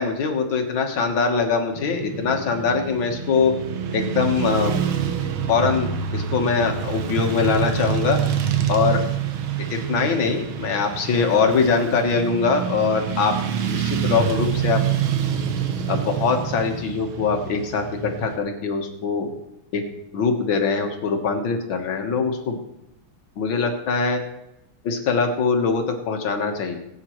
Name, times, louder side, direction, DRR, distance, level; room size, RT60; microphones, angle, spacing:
voice 1, 0.0-3.6 3.9-4.8 5.5-8.2 8.7-9.0 9.7-13.4 13.7-14.8 15.9-19.3 19.7-19.8 20.1-22.6 23.4-24.2 24.8-26.8, left 5 dB, 70° left, 4 dB, 2.0 m, -22 dB
Motorcycle / Traffic noise roadway noise, 1.7-18.4, right 8 dB, 75° right, 1.7 m, -26 dB
17.5 x 8.8 x 3.1 m, 0.86 s
omnidirectional pair, 2.3 m